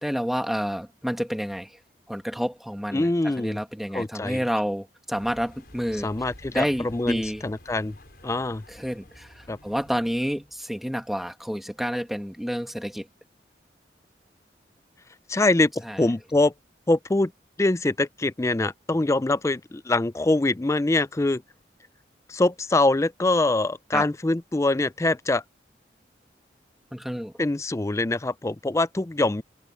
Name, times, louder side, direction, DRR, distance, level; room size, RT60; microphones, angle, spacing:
voice 1, 0.0-1.7 2.1-6.1 6.5-7.4 8.7-13.1 15.8-16.0 23.9-24.1 26.9-27.3, equal, ahead, 1.7 m, -29 dB
voice 2, 2.9-3.6 3.9-4.4 6.0-7.9 8.2-8.6 9.5-9.6 15.3-15.7 16.0-16.5 16.9-17.3 17.6-21.4 22.3-25.4 27.4-29.4, left 2 dB, 15° left, 0.4 m, -24 dB
sound 1, 5.1-10.6, left 1 dB, 60° left, 5.5 m, -50 dB
head